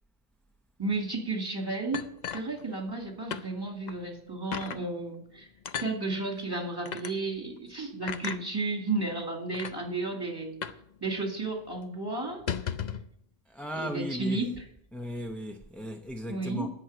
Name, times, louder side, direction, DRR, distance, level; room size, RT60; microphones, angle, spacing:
voice 1, 0.8-2.1 2.3-5.5 5.8-10.6 11.0-12.7 13.7-14.6 16.3-16.7, right 3 dB, 20° right, 2.2 m, -33 dB
sound 1, 1.9-3.0 3.3-3.5 3.9-4.0 4.5-4.8 5.7-5.9 6.9-7.1 8.1-8.4 9.2-9.3 9.5-9.8 10.6-10.9 11.1-11.2 11.6-11.8 12.3-13.1, left 8 dB, 50° left, 0.6 m, -35 dB
voice 2, 13.5-14.4 14.9-16.7, equal, ahead, 0.5 m, -36 dB
10.5 x 6.2 x 8.4 m
omnidirectional pair, 1.0 m